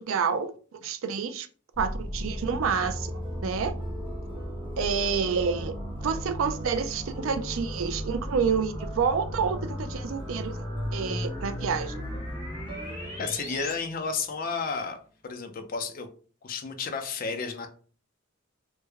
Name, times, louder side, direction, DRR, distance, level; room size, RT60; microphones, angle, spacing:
voice 1, 0.0-1.5 1.8-3.7 4.8-5.7 6.0-10.6 10.9-12.0, right 6 dB, 75° right, 0.4 m, -28 dB
sound 1, 1.8-13.7, equal, 15° left, 0.9 m, -35 dB
sound 2, 2.7-14.8, equal, 25° right, 0.5 m, -46 dB
voice 2, 13.2-15.0 15.2-16.1 16.4-17.7, left 5 dB, 45° left, 0.5 m, -32 dB
3.2 x 2.1 x 3.3 m
head